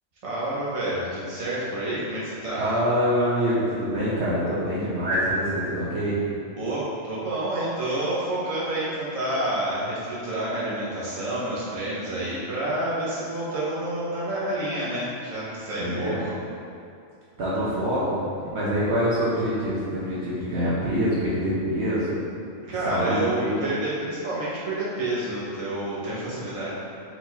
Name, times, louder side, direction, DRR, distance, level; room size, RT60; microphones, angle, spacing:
voice 1, 0.2-2.7 6.6-16.3 22.7-26.7, right 1 dB, 30° right, -8 dB, 1.0 m, -29 dB
voice 2, 2.6-6.2 15.8-16.2 17.4-22.2 22.8-23.6, equal, 60° right, -9 dB, 0.9 m, -25 dB
4.5 x 2.7 x 4.1 m, 2.4 s
omnidirectional pair, 1.4 m